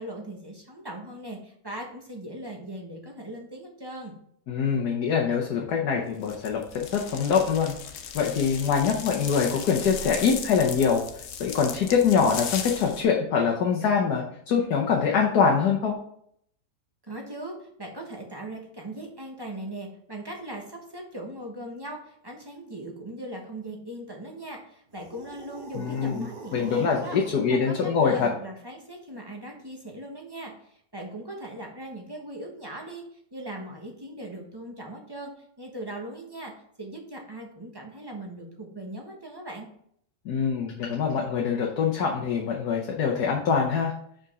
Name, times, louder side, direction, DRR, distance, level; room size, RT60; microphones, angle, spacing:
voice 1, 0.0-4.2 17.0-27.2 27.5-33.0 33.3-35.3 35.6-36.5 36.8-39.7, right 1 dB, 15° right, 1 dB, 1.1 m, -39 dB
voice 2, 4.5-7.8 8.1-11.0 11.4-15.9 25.7-28.3 40.2-43.9, left 6 dB, 75° left, -1 dB, 1.5 m, -24 dB
sound 1, 6.2-13.0, left 7 dB, 60° left, 1.0 m, -37 dB
sound 2, 24.9-27.5, right 4 dB, 40° right, 0.9 m, -44 dB
5.2 x 5.1 x 4.8 m, 0.67 s
omnidirectional pair, 1.7 m